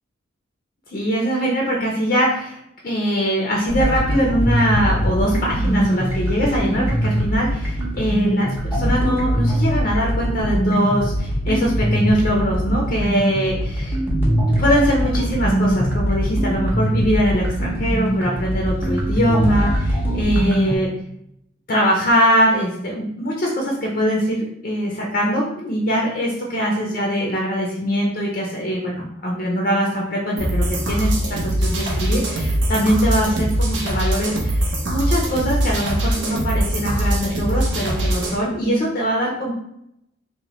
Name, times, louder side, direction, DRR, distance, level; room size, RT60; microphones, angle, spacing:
voice 1, 0.9-2.6 2.8-14.3 14.6-20.9 21.7-39.5, equal, 45° left, -2 dB, 0.4 m, -22 dB
sound 1, 3.7-20.8, equal, 10° right, 0.6 m, -22 dB
sound 2, 30.4-38.4, right 1 dB, 70° right, 0.6 m, -22 dB
2.8 x 2.1 x 3.0 m, 0.78 s
head